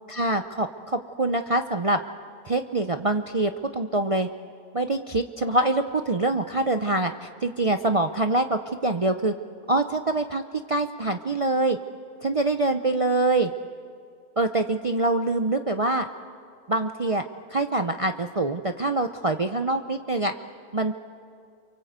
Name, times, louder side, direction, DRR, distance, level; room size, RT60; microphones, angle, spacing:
voice 1, 0.1-2.0 2.4-4.3 4.7-9.3 9.7-10.4 10.7-11.8 12.2-13.5 14.4-16.1 16.7-17.2 17.5-20.3 20.7-20.9, right 2 dB, 50° right, 6 dB, 0.4 m, -25 dB
29.5 x 24.0 x 8.1 m, 2.3 s
omnidirectional pair, 1.6 m